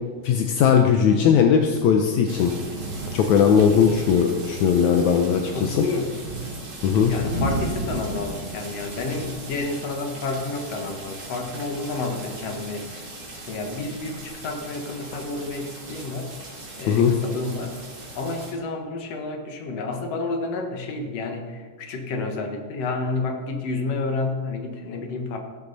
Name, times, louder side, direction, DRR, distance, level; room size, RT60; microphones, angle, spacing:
voice 1, 0.2-2.5 3.1-5.8 6.8-7.1 16.9-17.1, left 7 dB, 75° left, 3 dB, 2.2 m, -19 dB
sound 1, 2.3-18.5, right 1 dB, 30° right, 2.9 m, -36 dB
voice 2, 5.5-6.1 7.1-13.0 13.4-16.3 16.8-17.8 18.1-25.4, left 3 dB, 60° left, 3 dB, 2.5 m, -30 dB
15.5 x 12.5 x 4.2 m, 1.5 s
omnidirectional pair, 3.4 m